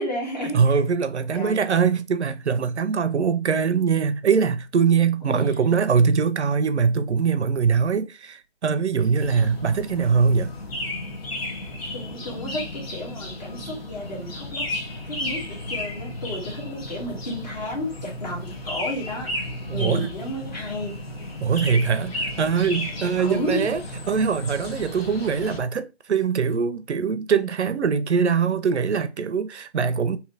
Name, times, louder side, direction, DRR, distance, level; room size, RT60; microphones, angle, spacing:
voice 1, 0.0-0.6 1.3-1.6 5.3-5.5 11.9-14.8 15.1-19.5 19.7-21.0 23.2-23.6, left 1 dB, 35° left, 1.7 m, -32 dB
voice 2, 0.5-10.5 19.7-20.1 21.4-23.8 24.1-30.2, right 6 dB, 65° right, 0.6 m, -22 dB
sound 1, 9.2-25.6, left 1 dB, 55° left, 1.2 m, -34 dB
3.2 x 2.8 x 3.9 m
hypercardioid pair, 170°, 36 cm